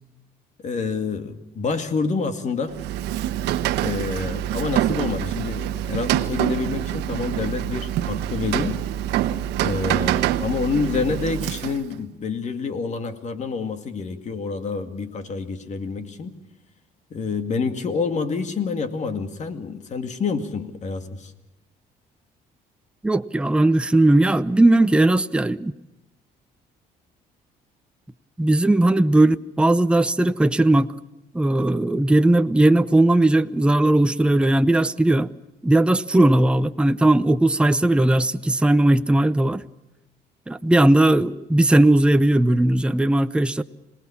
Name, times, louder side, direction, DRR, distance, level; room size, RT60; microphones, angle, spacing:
voice 1, 0.6-2.8 3.8-8.8 9.6-16.3 17.1-21.3, left 4 dB, 45° left, 2.3 m, -27 dB
Rain, 2.7-12.0, right 12 dB, 85° right, 1.1 m, -25 dB
voice 2, 23.0-25.7 28.4-30.9 31.3-35.3 35.6-39.6 40.5-43.6, right 1 dB, 5° right, 0.7 m, -18 dB
26.5 x 19.0 x 7.2 m
cardioid pair, 110°, 17 cm